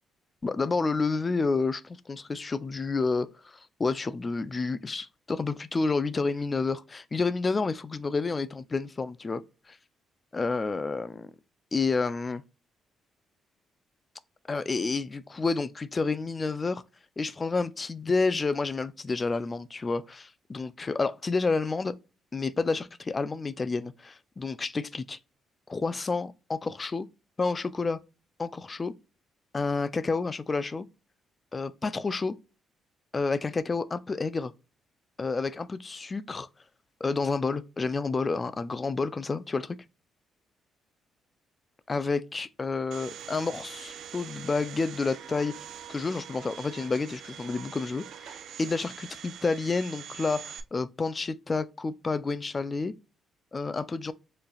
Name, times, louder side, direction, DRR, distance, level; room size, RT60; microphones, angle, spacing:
voice 1, 0.4-9.4 9.7-9.8 10.3-11.3 11.7-12.4 14.5-16.8 17.2-21.9 22.3-25.2 25.7-27.1 27.4-28.0 28.4-28.9 29.5-30.9 31.5-32.3 33.1-34.5 35.2-36.5 37.0-39.8 41.9-45.5 45.9-52.9 53.5-54.1, left 4 dB, 30° left, 0.4 m, -29 dB
Domestic sounds home sounds, 42.9-50.6, right 9 dB, 70° right, 0.5 m, -44 dB
4.7 x 3.2 x 2.3 m
cardioid pair, 90°, 0 cm